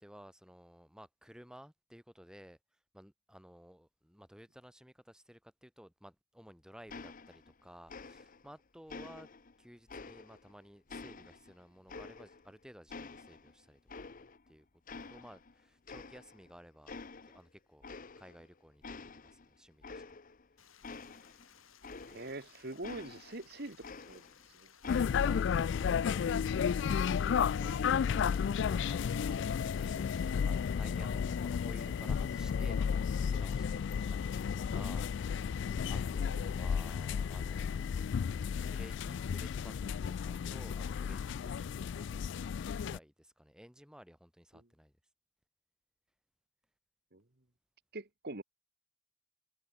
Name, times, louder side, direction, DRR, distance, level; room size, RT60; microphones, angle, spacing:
voice 1, 0.0-2.6 2.9-9.3 9.6-14.0 14.5-17.0 17.2-17.9 18.2-18.8 19.1-20.2 24.8-30.1 30.4-33.0 33.3-35.5 35.9-37.8 38.6-42.5 42.8-44.9, equal, 5° right, 7.7 m, -55 dB
sound 1, 6.9-7.6 7.9-8.5 8.9-10.5 10.9-12.6 12.9-14.5 14.9-15.5 15.9-16.5 16.9-17.4 17.8-18.5 18.8-22.4 22.8-24.5 24.8-25.5, left 4 dB, 40° left, 0.8 m, -49 dB
Stream, 20.6-30.4, left 8 dB, 80° left, 6.3 m, -61 dB
voice 2, 22.1-24.7 47.1-47.2 47.9-48.4, right 2 dB, 50° right, 1.7 m, -44 dB
sound 2, 24.9-43.0, left 7 dB, 60° left, 0.3 m, -33 dB
head